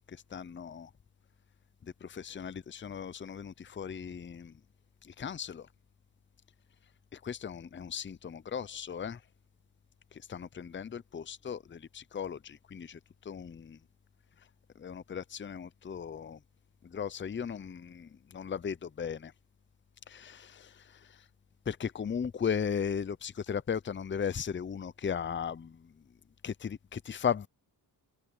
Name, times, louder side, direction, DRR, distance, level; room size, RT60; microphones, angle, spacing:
voice 1, 0.1-0.9 1.8-4.5 5.0-5.7 7.1-9.2 10.1-13.0 13.2-13.8 14.8-16.4 16.8-19.3 20.1-21.2 21.7-25.9 26.4-27.5, left 7 dB, 30° left, 0.6 m, -37 dB
cardioid pair, 95°, 41 cm